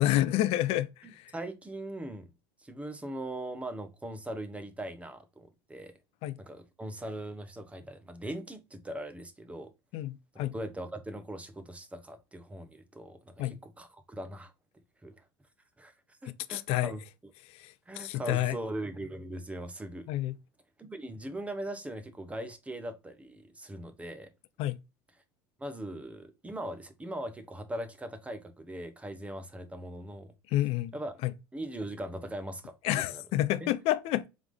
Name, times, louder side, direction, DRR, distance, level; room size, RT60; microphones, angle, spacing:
voice 1, 0.0-1.3 6.2-6.4 9.9-10.5 13.4-13.6 16.3-16.9 17.5-18.6 20.1-20.4 24.6-24.8 30.5-30.9 31.2-31.3 32.8-34.3, left 15 dB, 55° left, 0.5 m, -29 dB
voice 2, 1.0-2.3 2.6-5.9 6.4-9.7 10.3-14.5 15.0-15.2 15.8-15.9 16.2-17.0 17.9-20.1 20.8-24.3 25.6-30.3 30.9-31.1 31.5-33.2 33.6-33.7, right 1 dB, 10° right, 0.9 m, -40 dB
3.7 x 3.5 x 3.2 m
supercardioid pair, 105°, 12 cm